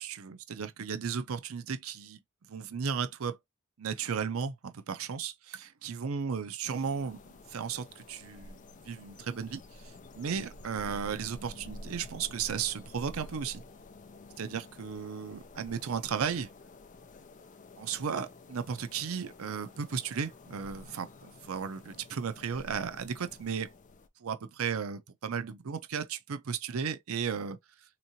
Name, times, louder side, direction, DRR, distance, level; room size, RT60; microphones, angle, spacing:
voice 1, 0.0-2.2 2.5-3.4 3.8-7.2 7.5-8.6 8.9-13.6 14.4-16.5 17.8-23.7 24.2-27.6, right 6 dB, 80° right, 0.5 m, -35 dB
sound 1, 6.6-24.1, left 2 dB, 35° left, 0.5 m, -50 dB
3.6 x 2.9 x 2.6 m
head